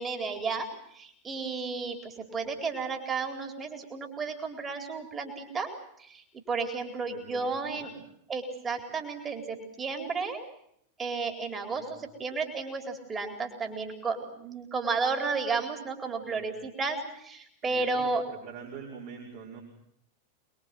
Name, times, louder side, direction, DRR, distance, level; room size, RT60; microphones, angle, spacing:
voice 1, 0.0-5.7 6.0-7.9 8.3-10.4 11.0-18.2, right 4 dB, 20° right, 5 dB, 4.1 m, -33 dB
voice 2, 7.0-7.5 7.8-8.0 11.7-12.0 16.2-16.4 17.6-19.6, right 6 dB, 50° right, -1 dB, 5.7 m, -45 dB
26.5 x 22.0 x 7.8 m, 0.71 s
figure-of-eight pair, 90°, 0 cm